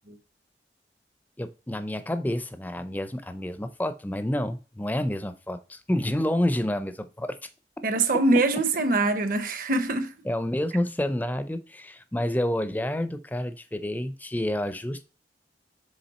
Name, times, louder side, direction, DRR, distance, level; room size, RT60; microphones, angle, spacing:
voice 1, 1.4-7.4 10.2-15.0, left 1 dB, 10° left, 0.4 m, -29 dB
voice 2, 7.8-10.1, right 2 dB, 50° right, 0.8 m, -23 dB
7.2 x 3.4 x 4.1 m
head